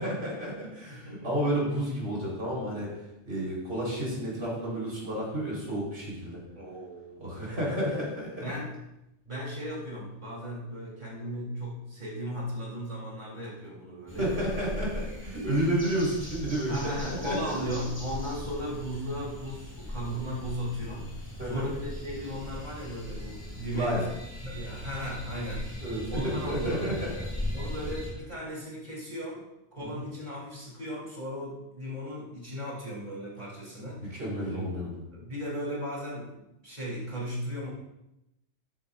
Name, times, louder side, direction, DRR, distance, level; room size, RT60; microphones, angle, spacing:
voice 1, 0.0-2.9 3.3-6.4 7.2-8.5 14.2-16.8 17.2-17.5 21.4-21.7 23.7-24.0 25.8-27.1 29.8-30.0 34.1-35.0, right 1 dB, 60° right, -5 dB, 5.0 m, -31 dB
voice 2, 0.9-1.3 6.5-7.4 8.4-8.8 9.2-14.3 15.4-15.5 16.2-16.3 16.7-24.1 24.4-25.7 26.1-26.9 27.5-29.5 29.7-34.7 35.1-37.7, equal, 40° right, -5 dB, 4.1 m, -36 dB
sound 1, 14.1-28.1, left 1 dB, 15° left, 2.8 m, -39 dB
13.5 x 10.5 x 2.7 m, 0.89 s
omnidirectional pair, 1.2 m